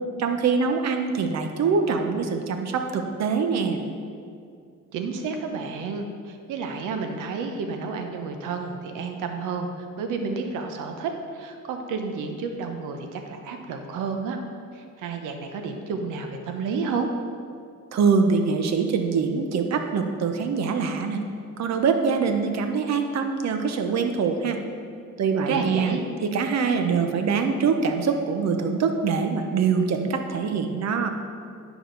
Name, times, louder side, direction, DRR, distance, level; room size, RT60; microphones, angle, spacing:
voice 1, 0.2-3.8 17.9-21.2 21.6-24.6 25.2-25.9 26.2-31.1, right 5 dB, 60° right, 6 dB, 0.9 m, -24 dB
voice 2, 4.9-14.4 14.7-17.1 25.5-26.0, right 5 dB, 90° right, 5 dB, 0.9 m, -31 dB
10.0 x 5.0 x 3.9 m, 2.3 s
cardioid pair, 90°, 30 cm